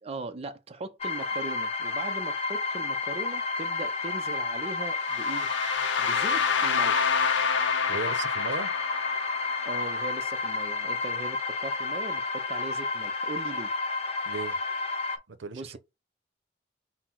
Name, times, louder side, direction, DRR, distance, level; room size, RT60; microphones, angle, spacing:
voice 1, 0.0-5.5 6.0-7.2 9.7-13.7 15.5-15.8, right 3 dB, 35° right, 0.5 m, -39 dB
sound 1, 1.0-15.2, left 4 dB, 35° left, 0.7 m, -31 dB
sound 2, 5.0-10.9, left 6 dB, 80° left, 0.6 m, -29 dB
voice 2, 7.9-8.7 14.2-14.6 15.3-15.8, right 4 dB, 85° right, 0.6 m, -36 dB
5.7 x 2.1 x 4.4 m
head